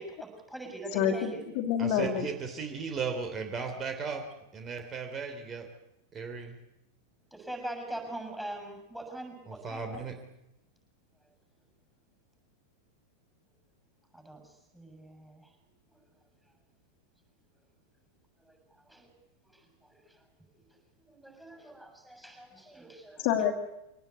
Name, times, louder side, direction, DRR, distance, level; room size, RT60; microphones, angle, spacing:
voice 1, 0.0-1.4 7.3-10.0 14.1-15.5 15.9-16.0 18.4-19.1 19.5-20.2 21.1-23.3, right 1 dB, 5° right, 4 dB, 7.0 m, -43 dB
voice 2, 0.9-2.3 23.2-23.5, left 9 dB, 45° left, 4 dB, 2.6 m, -27 dB
voice 3, 1.8-4.2 4.5-5.7 6.1-6.6 9.5-10.1, right 5 dB, 25° right, 6 dB, 3.2 m, -36 dB
24.5 x 18.5 x 8.3 m, 0.87 s
figure-of-eight pair, 90°, 0 cm